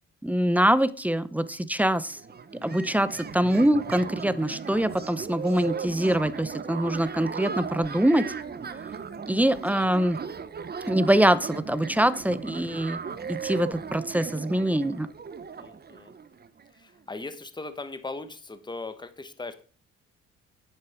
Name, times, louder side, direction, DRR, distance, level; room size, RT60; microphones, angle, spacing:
voice 1, 0.2-2.2 2.6-8.3 9.3-10.2 10.9-13.0 13.3-15.1, right 1 dB, 5° right, 15 dB, 0.7 m, -24 dB
sound 1, 2.1-16.7, right 6 dB, 30° right, 0.9 m, -37 dB
voice 2, 15.6-16.1 16.7-19.6, left 3 dB, 15° left, 10 dB, 1.3 m, -39 dB
10.5 x 9.0 x 4.5 m, 0.39 s
cardioid pair, 90°, 30 cm